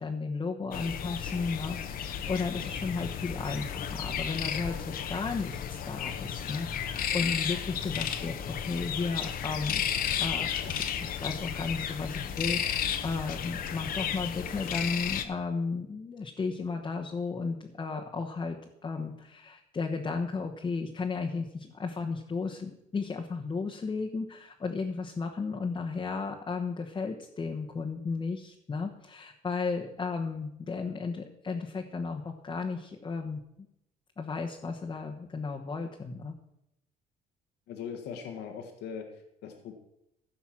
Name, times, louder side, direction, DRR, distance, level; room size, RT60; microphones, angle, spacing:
voice 1, 0.0-4.8 5.1-9.8 10.2-18.6 18.8-33.4 34.2-36.3, left 4 dB, 25° left, 0 dB, 1.2 m, -34 dB
sound 1, 0.7-15.2, left 8 dB, 60° left, 1.1 m, -33 dB
voice 2, 37.7-39.7, left 7 dB, 80° left, 4 dB, 1.7 m, -40 dB
15.5 x 5.7 x 6.0 m, 0.84 s
cardioid pair, 110°, 17 cm